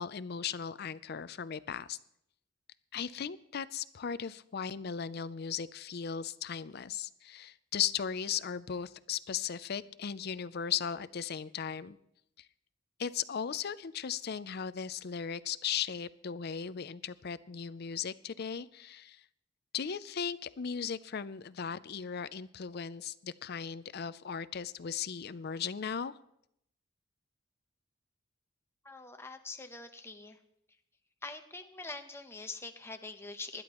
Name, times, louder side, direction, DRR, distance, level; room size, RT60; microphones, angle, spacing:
voice 1, 0.0-2.0 2.9-12.0 12.4-12.5 13.0-19.2 19.7-26.1, left 7 dB, 55° left, 16 dB, 0.5 m, -37 dB
voice 2, 28.8-30.4 31.2-33.6, left 3 dB, 15° left, 6 dB, 0.8 m, -44 dB
20.5 x 11.5 x 3.0 m, 0.76 s
head